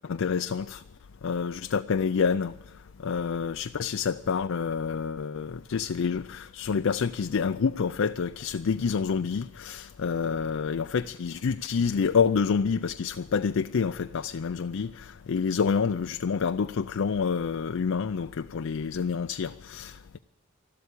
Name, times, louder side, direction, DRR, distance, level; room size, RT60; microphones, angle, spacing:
voice 1, 0.1-0.8 1.2-2.5 3.0-20.2, left 6 dB, 65° left, 0.4 m, -28 dB
13.5 x 12.5 x 8.3 m
head